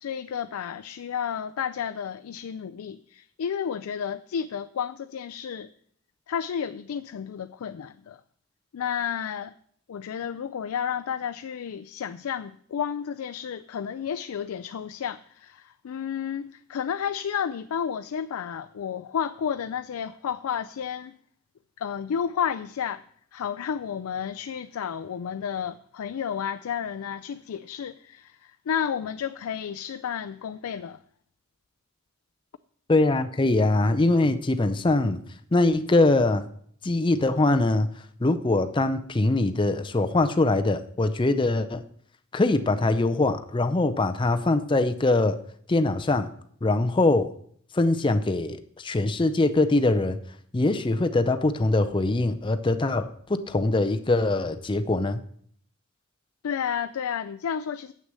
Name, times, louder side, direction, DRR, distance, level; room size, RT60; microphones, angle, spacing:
voice 1, 0.0-5.7 6.3-8.2 8.7-9.5 9.9-21.1 21.8-23.0 23.3-31.0 56.4-57.9, left 8 dB, 90° left, 0.4 m, -31 dB
voice 2, 32.9-35.2 35.5-36.5 36.8-37.9 38.2-41.8 42.3-45.4 45.7-46.3 46.6-47.3 47.7-50.2 50.5-55.2, left 2 dB, 25° left, 0.5 m, -23 dB
7.7 x 6.3 x 8.0 m
head